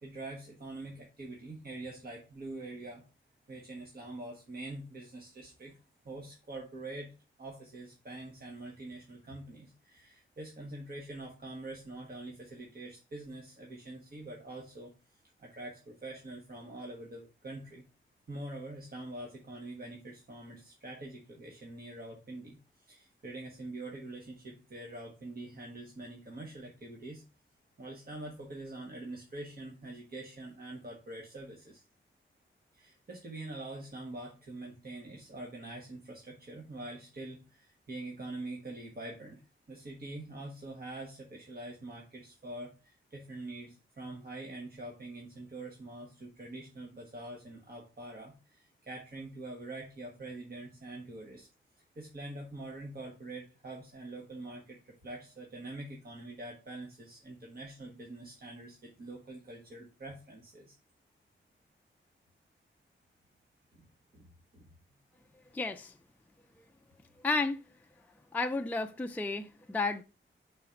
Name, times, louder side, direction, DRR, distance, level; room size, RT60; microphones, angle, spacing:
voice 1, 0.0-3.0 3.5-5.7 6.0-14.9 15.4-17.8 18.3-27.2 27.8-31.8 32.7-51.5 51.9-60.8 63.7-63.8 64.1-64.3 64.5-64.7, right 2 dB, 45° right, 1.4 m, -45 dB
voice 2, 65.5-65.9 67.2-67.6 68.3-70.0, left 3 dB, 10° left, 0.4 m, -32 dB
5.2 x 4.1 x 5.7 m
wide cardioid pair, 160°, 21 cm